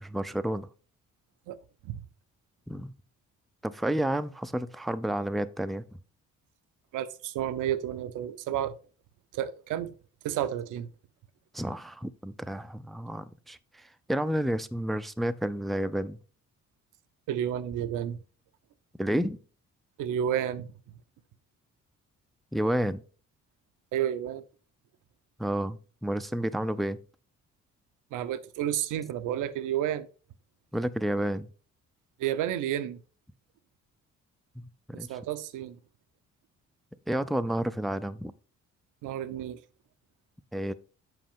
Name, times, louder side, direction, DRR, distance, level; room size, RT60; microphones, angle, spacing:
voice 1, 0.0-0.7 2.7-2.9 3.6-5.8 11.5-16.2 19.0-19.4 22.5-23.0 25.4-27.0 30.7-31.5 34.6-35.1 37.1-38.3 40.5-40.7, right 1 dB, ahead, 0.4 m, -30 dB
voice 2, 6.9-8.8 9.3-9.9 10.2-10.9 17.3-18.2 20.0-20.7 23.9-24.4 28.1-30.1 32.2-33.0 34.9-35.8 39.0-39.6, right 10 dB, 85° right, 0.6 m, -31 dB
7.7 x 5.0 x 3.6 m
cardioid pair, 90°, 30 cm